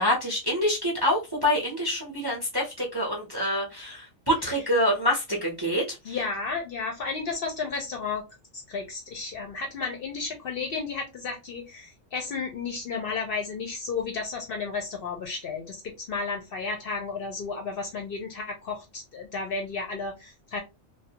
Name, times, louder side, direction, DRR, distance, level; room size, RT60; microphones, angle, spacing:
voice 1, 0.0-6.0, equal, 25° right, -2 dB, 0.5 m, -26 dB
voice 2, 6.0-8.2 8.5-20.6, left 4 dB, 60° left, 2 dB, 0.7 m, -33 dB
2.3 x 2.1 x 2.7 m, 0.25 s
omnidirectional pair, 1.3 m